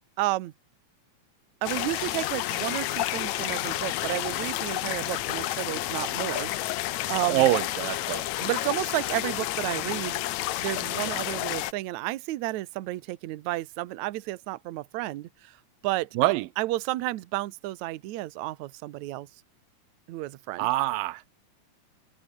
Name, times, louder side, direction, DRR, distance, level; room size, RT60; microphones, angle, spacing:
voice 1, 0.2-0.5 1.6-7.5 8.4-15.6 15.8-16.1 16.6-19.3 20.1-20.7, right 17 dB, 70° right, 2.0 m, -32 dB
sound 1, 1.6-11.7, left 15 dB, 70° left, 1.8 m, -30 dB
voice 2, 7.3-8.2 16.2-16.5 20.6-21.2, right 18 dB, 85° right, 2.4 m, -24 dB
omnidirectional pair, 4.1 m